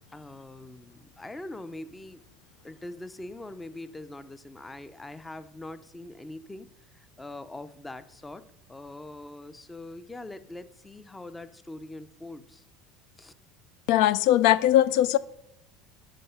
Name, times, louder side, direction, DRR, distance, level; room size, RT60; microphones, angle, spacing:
voice 1, 0.1-2.2 2.6-6.7 6.9-8.4 8.7-12.6 13.2-13.3, left 2 dB, 10° left, 0.5 m, -42 dB
voice 2, 13.9-15.2, left 13 dB, 70° left, 0.3 m, -20 dB
9.9 x 5.6 x 5.6 m
supercardioid pair, 125°, 0 cm